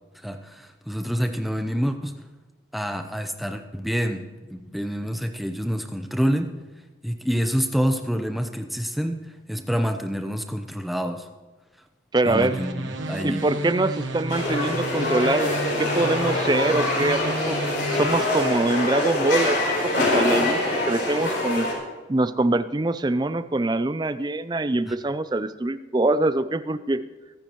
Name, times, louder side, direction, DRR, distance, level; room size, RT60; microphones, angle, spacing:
voice 1, 0.2-2.2 2.7-6.6 7.0-11.3 12.2-13.5 24.9-25.0, equal, ahead, 6 dB, 0.8 m, -27 dB
voice 2, 12.1-12.6 13.2-15.5 15.8-17.6 17.9-21.7 22.1-27.0, right 2 dB, 20° right, 13 dB, 0.4 m, -24 dB
sound 1, 12.2-18.1, right 2 dB, 85° right, 1.3 m, -32 dB
sound 2, 14.3-21.7, left 2 dB, 70° left, 4.0 m, -24 dB
23.5 x 9.7 x 3.1 m, 1.2 s
head